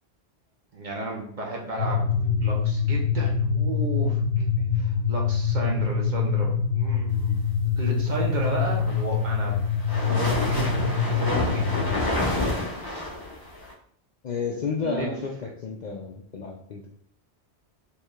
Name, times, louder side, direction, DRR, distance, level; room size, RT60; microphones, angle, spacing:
voice 1, 0.7-2.1 2.4-4.2 4.5-7.4 7.7-9.6 9.9-10.7 11.1-11.7 14.8-15.2, right 2 dB, 45° right, -1 dB, 0.9 m, -33 dB
sound 1, 1.8-12.0, left 6 dB, 85° left, 0.9 m, -25 dB
sound 2, 8.6-13.7, left 1 dB, 20° left, 1.1 m, -29 dB
voice 2, 14.2-15.3 15.6-16.9, left 5 dB, 55° left, -1 dB, 0.5 m, -31 dB
4.5 x 3.2 x 2.4 m, 0.65 s
omnidirectional pair, 1.2 m